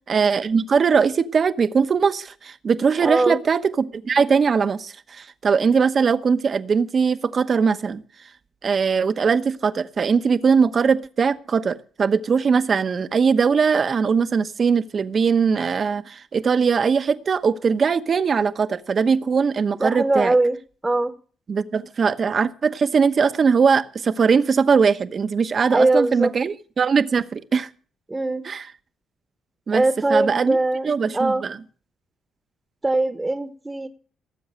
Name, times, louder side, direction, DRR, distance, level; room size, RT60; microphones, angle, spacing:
voice 1, 0.1-8.0 8.6-20.3 21.5-27.7 28.4-28.7 29.7-29.8 30.1-30.6 30.8-31.6, right 5 dB, 45° right, 0.9 m, -20 dB
voice 2, 3.0-3.4 19.8-20.6 20.8-21.1 25.7-26.3 28.1-28.5 29.7-30.9 31.1-31.5 32.8-33.9, right 2 dB, 15° right, 1.1 m, -21 dB
18.5 x 7.8 x 6.3 m
cardioid pair, 90°, 0 cm